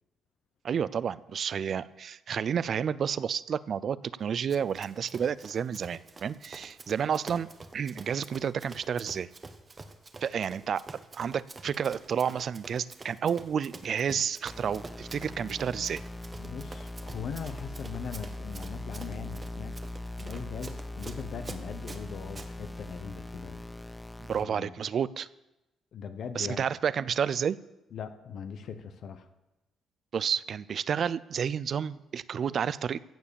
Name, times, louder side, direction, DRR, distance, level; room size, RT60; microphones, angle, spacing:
voice 1, 0.6-7.5 7.7-9.3 10.2-10.8 11.1-16.0 24.2-25.3 26.4-27.6 30.1-33.0, right 7 dB, 55° right, 18 dB, 0.5 m, -30 dB
Run, 4.5-22.5, right 3 dB, 30° right, 1.3 m, -47 dB
sound 1, 14.5-24.4, left 1 dB, 10° left, 0.5 m, -40 dB
voice 2, 16.4-19.8 20.2-23.6 24.4-24.7 25.9-26.6 27.9-29.3, left 7 dB, 65° left, 9 dB, 1.0 m, -40 dB
15.5 x 7.2 x 7.0 m, 0.97 s
cardioid pair, 90°, 0 cm